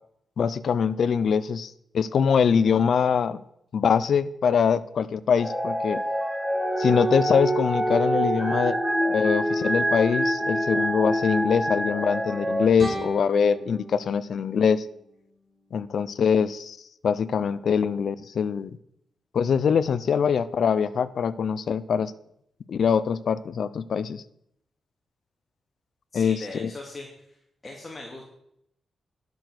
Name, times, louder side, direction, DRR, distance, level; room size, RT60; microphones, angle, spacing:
voice 1, 0.4-3.4 3.7-6.0 6.8-8.8 9.0-14.8 15.7-16.8 17.0-18.8 19.3-22.1 22.7-24.2 26.1-26.7, left 6 dB, 70° left, 17 dB, 0.5 m, -23 dB
sound 1, 5.3-12.7, right 1 dB, 10° left, 3.9 m, -25 dB
sound 2, 12.8-15.8, right 1 dB, 35° right, 3.3 m, -38 dB
voice 2, 26.1-27.4 27.6-28.3, left 2 dB, 30° left, 0 dB, 2.3 m, -40 dB
11.5 x 7.0 x 6.0 m, 0.77 s
cardioid pair, 80°, 0 cm